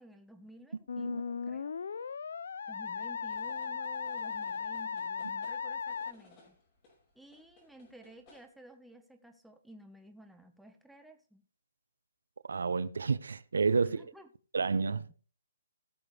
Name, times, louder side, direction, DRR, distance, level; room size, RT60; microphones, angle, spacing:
voice 1, 0.0-1.7 2.7-6.6 7.1-11.4 13.7-14.3, right 1 dB, ahead, 1.2 m, -54 dB
Musical instrument, 0.9-6.1, left 6 dB, 70° left, 0.5 m, -37 dB
sound 1, 3.3-8.5, left 3 dB, 25° left, 5.4 m, -61 dB
voice 2, 12.5-14.0 14.5-15.0, right 4 dB, 85° right, 0.6 m, -30 dB
17.0 x 7.0 x 3.3 m
hypercardioid pair, 155°, 0 cm